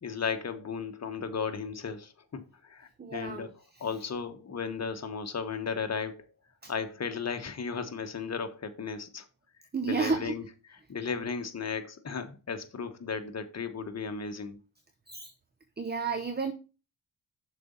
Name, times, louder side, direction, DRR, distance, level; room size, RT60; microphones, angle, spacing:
voice 1, 0.0-3.5 3.8-6.3 6.7-9.3 9.8-14.6, left 5 dB, 40° left, 1.2 m, -35 dB
voice 2, 3.0-3.5 6.6-6.7 9.7-10.3 15.1-15.3 15.8-16.5, right 4 dB, 25° right, 0.8 m, -31 dB
6.6 x 4.2 x 5.3 m
cardioid pair, 55°, 40 cm